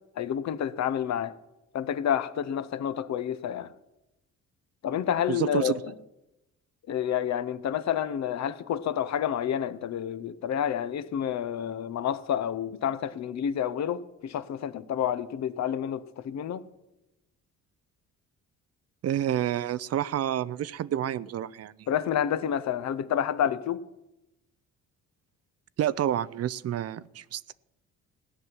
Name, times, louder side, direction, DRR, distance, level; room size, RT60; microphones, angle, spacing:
voice 1, 0.2-1.3 1.7-3.7 4.8-5.9 6.9-16.6 21.9-23.8, left 9 dB, 60° left, 0.8 m, -29 dB
voice 2, 5.3-5.8 19.0-21.7 25.8-27.5, right 11 dB, 55° right, 0.5 m, -29 dB
16.5 x 6.0 x 9.6 m
cardioid pair, 90°, 30 cm